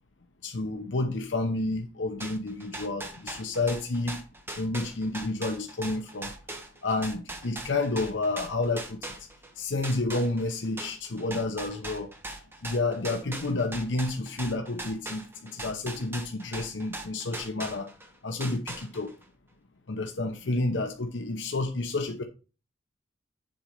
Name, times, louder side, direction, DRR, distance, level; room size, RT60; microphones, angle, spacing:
voice 1, 0.4-4.2 4.6-6.3 6.8-9.0 9.6-12.1 12.6-17.9 18.2-19.1 19.9-22.2, left 2 dB, 75° left, 0.8 m, -30 dB
sound 1, 2.2-9.5 9.8-18.1 18.4-19.2, right 2 dB, 15° right, 1.2 m, -40 dB
7.7 x 4.4 x 5.4 m
head